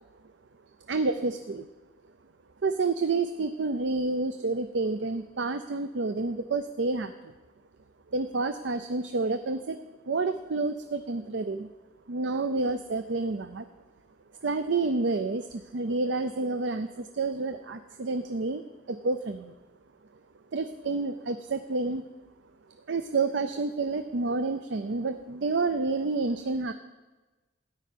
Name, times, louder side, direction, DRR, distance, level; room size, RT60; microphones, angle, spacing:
voice 1, 0.9-1.6 2.6-7.1 8.1-9.8 10.1-11.7 12.1-13.7 14.4-18.6 18.9-19.5 20.5-22.0 22.9-26.7, right 3 dB, 70° right, 9 dB, 0.5 m, -29 dB
13.5 x 5.2 x 9.2 m, 1.2 s
head